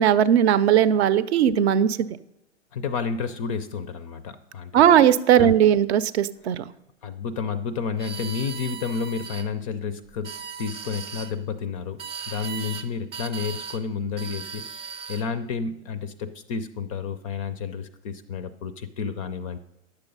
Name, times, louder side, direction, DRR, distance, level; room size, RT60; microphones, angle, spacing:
voice 1, 0.0-2.1 4.7-6.6, right 9 dB, 55° right, 15 dB, 0.6 m, -18 dB
voice 2, 2.7-5.0 5.4-5.5 7.0-19.6, left 5 dB, 30° left, 13 dB, 0.4 m, -31 dB
sound 1, 8.0-9.5 10.1-11.3 12.0-12.9 13.1-13.8 14.2-15.3, right 6 dB, 15° right, 0.7 m, -37 dB
9.9 x 6.8 x 5.3 m, 0.87 s
hypercardioid pair, 125°, 38 cm